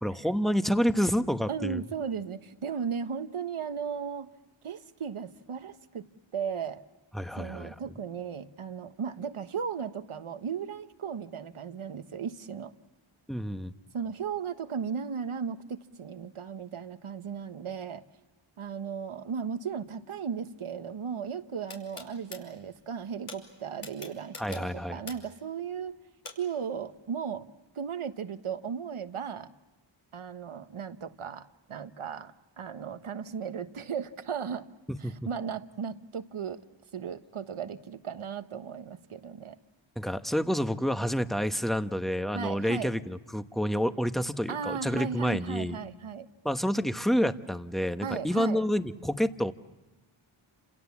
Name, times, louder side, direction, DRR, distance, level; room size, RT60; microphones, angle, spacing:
voice 1, 0.0-1.8 7.1-8.0 13.3-13.7 24.4-25.0 35.0-35.1 40.0-45.8 46.4-49.5, equal, ahead, 9 dB, 1.1 m, -28 dB
voice 2, 1.5-4.3 4.6-6.0 6.3-6.8 7.3-12.7 13.9-18.0 18.6-26.0 26.4-27.5 27.7-29.5 30.1-34.7 35.0-36.6 36.9-39.6 42.3-42.9 44.5-46.3 48.0-48.6, right 7 dB, 75° right, 10 dB, 1.3 m, -36 dB
sound 1, 21.7-22.4 23.3-23.4 23.8-25.4 26.2-26.4, left 4 dB, 90° left, 5.3 m, -42 dB
30.0 x 27.0 x 7.3 m, 1.2 s
wide cardioid pair, 95°, 50 cm